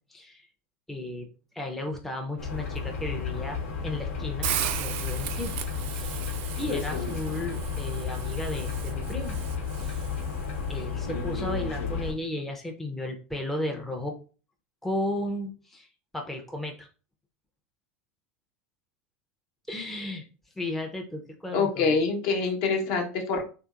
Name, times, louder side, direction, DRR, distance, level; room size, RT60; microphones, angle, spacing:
voice 1, 0.1-0.5 0.9-1.3 1.5-5.5 5.9-6.2 6.6-9.4 9.8-10.0 10.7-14.2 14.8-15.9 16.1-16.9 19.7-20.2 20.6-22.0, left 1 dB, 5° left, 2 dB, 0.5 m, -34 dB
sound 1, 2.4-12.1, left 5 dB, 80° left, 0.9 m, -32 dB
Hiss, 4.4-10.5, right 11 dB, 60° right, 0.4 m, -36 dB
voice 2, 21.5-23.4, left 4 dB, 55° left, 2 dB, 0.8 m, -25 dB
2.9 x 2.8 x 2.4 m, 0.36 s
hypercardioid pair, 110°, 7 cm